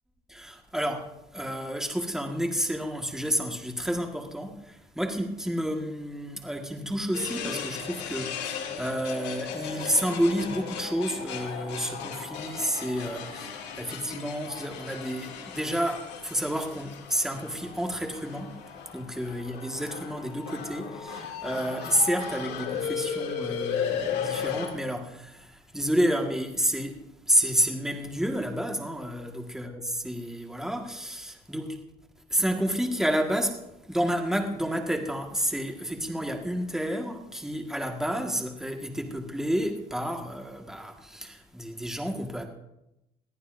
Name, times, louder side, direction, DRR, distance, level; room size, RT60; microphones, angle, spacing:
voice 1, 0.3-18.6 18.9-31.8 32.3-33.6 33.9-42.5, equal, 5° right, 1.7 m, -30 dB
sound 1, 7.1-24.7, left 7 dB, 80° left, 2.6 m, -36 dB
22.0 x 14.0 x 2.6 m
cardioid pair, 110°, 17 cm